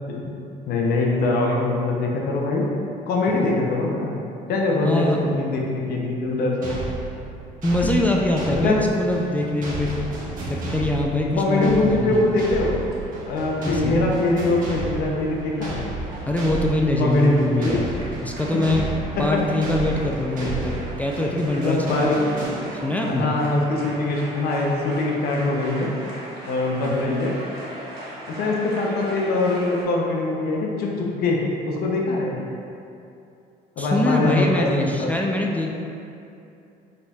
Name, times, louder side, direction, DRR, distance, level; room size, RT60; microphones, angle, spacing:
voice 1, 0.7-2.7 3.1-4.2 4.5-6.8 8.6-8.8 11.3-12.8 13.3-15.8 17.0-17.8 19.2-19.4 20.4-20.5 21.4-22.2 23.1-25.9 26.5-27.3 27.6-27.7 28.2-32.4 33.8-35.1, left 2 dB, 65° left, -1 dB, 0.7 m, -23 dB
voice 2, 4.8-5.3 5.6-5.9 7.6-10.0 10.5-12.4 13.6-14.0 16.3-17.9 18.2-18.9 19.2-23.3 26.8-27.1 33.8-35.7, left 1 dB, 10° left, -1 dB, 0.4 m, -24 dB
sound 1, 6.6-23.1, right 2 dB, 55° right, 1.4 m, -33 dB
sound 2, 11.8-29.8, right 1 dB, 75° right, 1.1 m, -40 dB
5.3 x 4.0 x 2.4 m, 2.6 s
cardioid pair, 110°, 17 cm